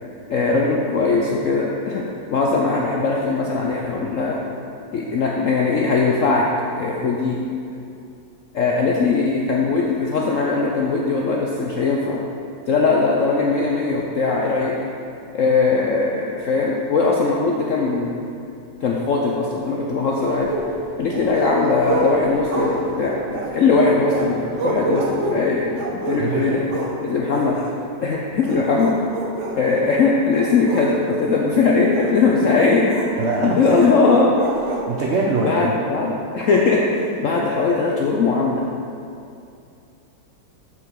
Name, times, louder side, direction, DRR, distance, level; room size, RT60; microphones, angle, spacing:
voice 1, 0.3-2.0 2.3-4.4 4.9-6.4 6.8-7.4 8.5-12.2 12.7-14.7 15.3-18.2 18.8-20.5 21.0-26.6 27.0-27.6 28.0-29.0 29.6-32.9 33.4-34.3 35.4-38.6, left 4 dB, 70° left, -2 dB, 0.7 m, -20 dB
sound 1, 20.2-27.0 27.3-27.7 28.3-29.9 30.3-31.2 31.9-32.1 32.9-33.1 33.6-34.8, right 1 dB, 55° right, 0.9 m, -28 dB
voice 2, 26.2-26.6 33.2-34.2 34.9-35.9, right 3 dB, 85° right, -2 dB, 0.6 m, -23 dB
7.3 x 6.0 x 4.6 m, 2.5 s
omnidirectional pair, 2.1 m